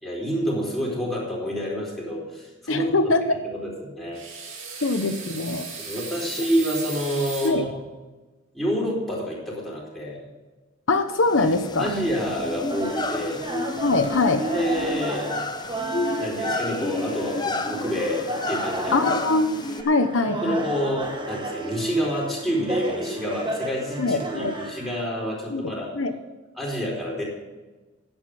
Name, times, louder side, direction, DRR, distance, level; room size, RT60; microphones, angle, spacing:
voice 1, 0.0-2.9 3.4-4.2 5.8-7.7 8.5-10.2 11.4-13.5 14.5-15.4 16.2-19.1 20.4-25.9 26.6-27.2, equal, ahead, -5 dB, 4.3 m, -28 dB
voice 2, 2.7-3.4 4.8-5.7 7.4-7.6 10.9-11.9 13.8-14.4 18.9-20.6 24.0-24.5 25.5-26.1, left 3 dB, 80° left, 8 dB, 0.9 m, -23 dB
sound 1, 4.1-7.5, right 5 dB, 85° right, 2.9 m, -36 dB
sound 2, 11.2-19.8, left 2 dB, 20° left, 0.7 m, -31 dB
sound 3, 12.7-25.0, right 1 dB, 25° right, 1.5 m, -32 dB
11.0 x 8.9 x 6.1 m, 1.2 s
head